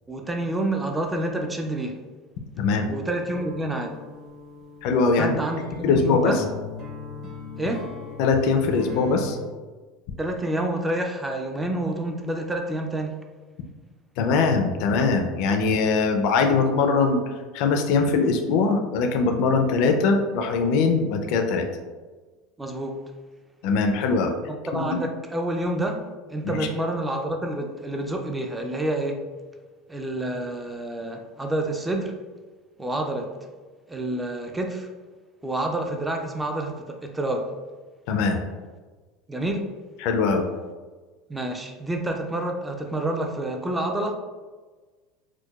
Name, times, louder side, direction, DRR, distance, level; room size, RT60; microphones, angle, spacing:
voice 1, 0.1-2.0 2.9-4.0 5.2-6.4 7.6-7.9 10.2-13.2 22.6-23.1 24.5-26.0 26.3-29.2 29.9-32.2 32.8-33.4 33.9-34.9 35.4-37.5 39.3-39.7 41.3-44.1, right 1 dB, 10° right, 3 dB, 0.3 m, -28 dB
voice 2, 2.6-2.9 4.8-5.3 5.8-6.4 8.2-9.4 14.2-21.7 23.6-24.3 24.7-24.8 26.4-26.7 38.1-38.4 40.0-40.5, left 4 dB, 60° left, 4 dB, 0.4 m, -22 dB
sound 1, 3.3-9.4, left 3 dB, 40° right, 0.9 m, -38 dB
4.5 x 2.2 x 2.3 m, 1.3 s
supercardioid pair, 145°, 0 cm